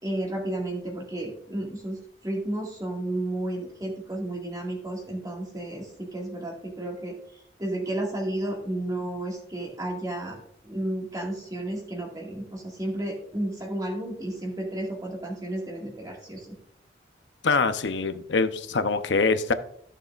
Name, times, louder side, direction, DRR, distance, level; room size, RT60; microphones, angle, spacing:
voice 1, 0.0-7.2 7.6-16.6, right 1 dB, 20° right, 0 dB, 2.0 m, -32 dB
voice 2, 17.4-19.5, left 4 dB, 85° left, 10 dB, 0.8 m, -24 dB
14.5 x 6.8 x 2.5 m, 0.68 s
head